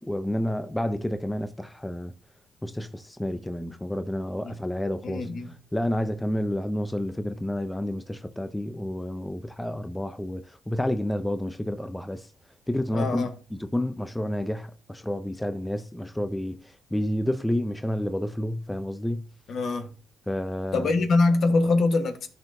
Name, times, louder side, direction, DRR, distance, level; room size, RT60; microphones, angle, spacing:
voice 1, 0.0-2.1 2.6-12.3 12.7-19.3 20.3-20.9, left 1 dB, 10° left, 0.5 m, -30 dB
voice 2, 5.0-5.5 12.9-13.3 19.5-19.9 20.7-22.3, left 3 dB, 60° left, 1.2 m, -23 dB
13.0 x 4.5 x 2.6 m
cardioid pair, 90°, 0 cm